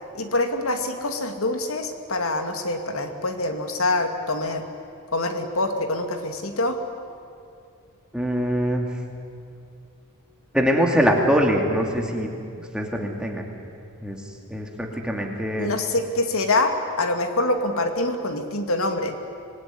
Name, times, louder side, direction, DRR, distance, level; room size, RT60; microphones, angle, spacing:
voice 1, 0.1-4.6 5.1-6.8 15.6-19.1, left 2 dB, 75° left, 6 dB, 2.2 m, -25 dB
voice 2, 8.1-8.9 10.5-12.3 12.6-13.4 14.0-14.2 14.5-15.7, equal, 5° right, 1 dB, 2.5 m, -23 dB
25.5 x 20.0 x 9.6 m, 2.5 s
head